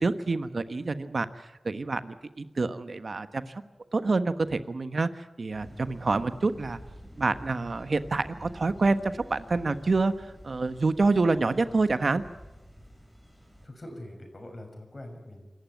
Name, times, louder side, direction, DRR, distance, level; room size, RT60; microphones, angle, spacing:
voice 1, 0.0-1.3 1.6-3.6 3.9-6.8 7.2-12.2, right 3 dB, 55° right, 11 dB, 1.2 m, -27 dB
sound 1, 5.5-13.7, equal, ahead, 7.0 m, -48 dB
voice 2, 13.6-15.5, left 1 dB, 35° left, 3 dB, 6.3 m, -43 dB
26.5 x 14.5 x 9.3 m, 1.1 s
wide cardioid pair, 70°, 0 cm